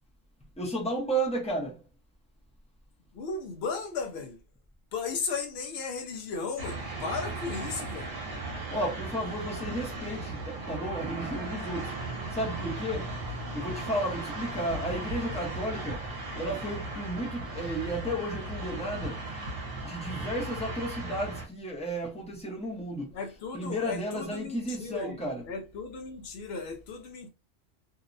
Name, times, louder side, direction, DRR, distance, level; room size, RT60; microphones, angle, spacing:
voice 1, 0.6-1.8 8.7-11.9 12.3-13.1 13.5-16.1 16.4-19.2 19.8-23.1 23.5-25.4, right 1 dB, 5° left, 0.5 m, -33 dB
voice 2, 3.1-4.4 4.9-8.1 23.1-27.3, left 4 dB, 65° left, 0.8 m, -35 dB
sound 1, 6.6-21.5, right 2 dB, 55° right, 1.0 m, -36 dB
2.7 x 2.0 x 2.5 m
omnidirectional pair, 1.2 m